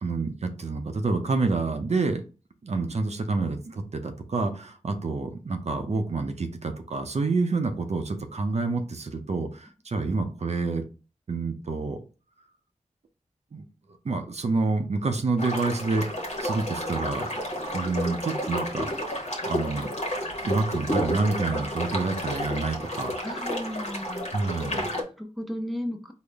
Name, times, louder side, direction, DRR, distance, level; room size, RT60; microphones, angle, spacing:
voice 1, 0.0-2.2 2.6-10.8 11.3-12.0 13.5-13.6 14.0-16.1 16.4-17.3 17.7-18.9 19.4-19.9 20.4-23.2 24.3-24.9, right 3 dB, 55° right, 6 dB, 0.6 m, -28 dB
sound 1, 15.4-25.0, equal, 55° left, 1.0 m, -31 dB
voice 2, 23.2-24.2 24.9-26.1, equal, ahead, 5 dB, 0.6 m, -34 dB
3.8 x 2.1 x 3.3 m, 0.33 s
cardioid pair, 45°, 13 cm